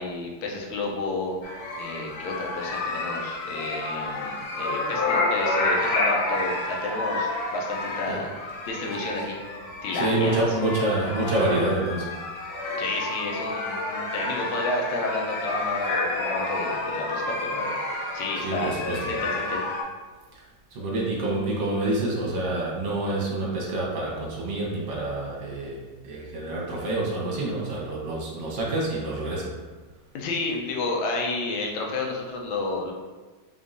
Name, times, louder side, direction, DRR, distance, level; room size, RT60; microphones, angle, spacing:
voice 1, 0.0-9.4 9.8-10.6 12.8-18.8 19.1-19.6 30.1-32.9, left 2 dB, 90° left, -1 dB, 1.5 m, -31 dB
sound 1, 1.4-19.8, left 2 dB, 65° left, 0.8 m, -29 dB
voice 2, 9.9-12.2 18.4-19.0 20.3-20.4 20.7-29.5, right 2 dB, 50° right, -4 dB, 1.0 m, -27 dB
3.7 x 3.5 x 2.6 m, 1.3 s
omnidirectional pair, 2.2 m